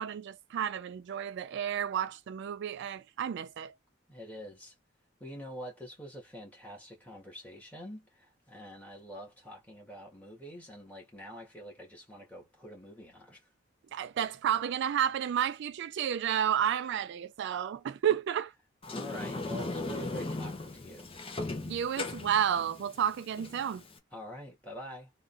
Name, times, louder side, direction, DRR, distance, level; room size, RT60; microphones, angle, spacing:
voice 1, 0.0-3.7 13.9-18.5 21.7-23.8, right 9 dB, 60° right, 0.3 m, -31 dB
voice 2, 4.1-4.7 5.2-13.5 18.9-21.1 24.1-25.1, equal, 10° left, 1.6 m, -46 dB
Sliding door, 18.8-24.0, left 2 dB, 30° left, 0.8 m, -38 dB
3.7 x 2.6 x 2.5 m
head